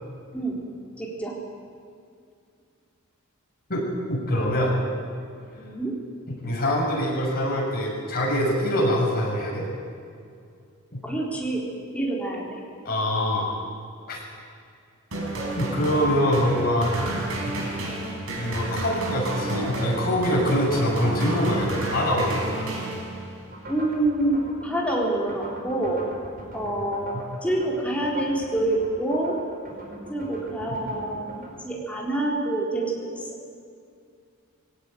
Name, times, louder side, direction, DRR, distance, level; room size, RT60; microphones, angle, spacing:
voice 1, 1.0-1.3 5.5-6.0 11.0-11.6 11.9-12.6 23.7-26.1 26.5-29.3 30.1-31.3 31.6-33.1, right 1 dB, 5° left, -3 dB, 4.4 m, -26 dB
voice 2, 3.7-4.7 6.3-9.6 10.9-11.0 12.8-13.5 14.1-14.2 15.6-17.1 18.3-22.7 26.6-26.8 27.1-27.2, equal, 45° left, -2 dB, 7.2 m, -24 dB
sound 1, 15.1-23.5, right 2 dB, 75° right, 5.5 m, -31 dB
sound 2, 23.5-31.5, right 1 dB, 45° right, 4.8 m, -41 dB
20.5 x 17.5 x 9.5 m, 2.4 s
head